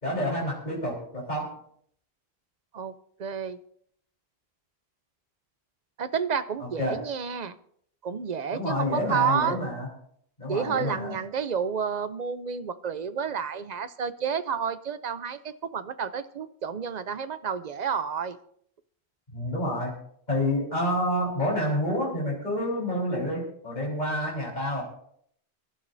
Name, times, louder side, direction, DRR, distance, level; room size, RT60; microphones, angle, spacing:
voice 1, 0.0-1.6 6.6-7.0 8.5-9.9 10.4-11.2 19.3-19.9 20.3-24.8, left 1 dB, 45° left, -4 dB, 4.0 m, -28 dB
voice 2, 3.2-3.6 6.0-7.6 8.0-9.6 10.5-18.4, right 6 dB, 50° right, 13 dB, 0.7 m, -30 dB
25.0 x 12.0 x 2.6 m, 0.65 s
omnidirectional pair, 1.1 m